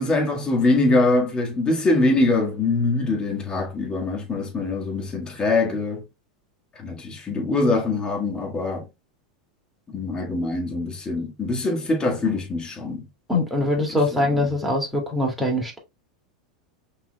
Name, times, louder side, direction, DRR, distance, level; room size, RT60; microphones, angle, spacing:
voice 1, 0.0-6.0 6.8-8.8 9.9-13.1 13.9-14.5, left 2 dB, 25° left, 1.7 m, -23 dB
voice 2, 13.3-15.8, left 1 dB, ahead, 2.3 m, -23 dB
5.9 x 3.9 x 2.2 m
hypercardioid pair, 100°, 4 cm